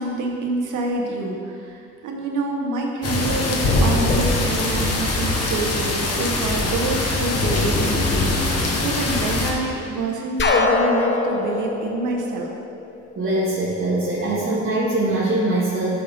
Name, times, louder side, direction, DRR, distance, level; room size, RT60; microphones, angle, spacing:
voice 1, 0.0-12.5, right 3 dB, 80° right, 0 dB, 1.6 m, -27 dB
sound 1, 3.0-9.5, left 2 dB, 55° left, 1.6 m, -22 dB
sound 2, 10.4-13.2, left 3 dB, 40° left, 1.1 m, -22 dB
voice 2, 13.2-16.0, right 2 dB, 45° right, -10 dB, 2.4 m, -22 dB
11.0 x 7.7 x 3.8 m, 2.4 s
cardioid pair, 90°, 30 cm